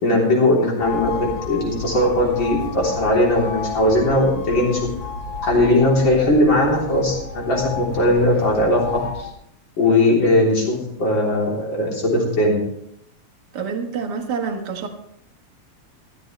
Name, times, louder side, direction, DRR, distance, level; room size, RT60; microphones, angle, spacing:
voice 1, 0.0-4.9 5.4-8.8 9.8-12.6, left 1 dB, 40° left, -3 dB, 4.0 m, -19 dB
sound 1, 0.8-9.3, left 5 dB, 60° left, 2.1 m, -32 dB
voice 2, 13.5-14.9, right 5 dB, 45° right, 3 dB, 1.6 m, -27 dB
15.0 x 13.0 x 3.2 m, 0.75 s
omnidirectional pair, 3.3 m